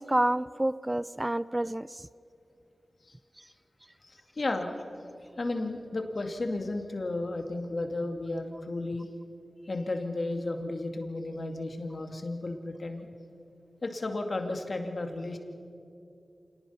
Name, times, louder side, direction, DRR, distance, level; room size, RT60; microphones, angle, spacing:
voice 1, 0.0-2.0, right 1 dB, 20° right, 17 dB, 0.4 m, -28 dB
voice 2, 4.0-4.7 5.4-9.1 9.6-13.1 13.8-15.4, left 2 dB, 55° left, 4 dB, 2.4 m, -33 dB
26.5 x 19.0 x 5.8 m, 2.6 s
cardioid pair, 45°, 0 cm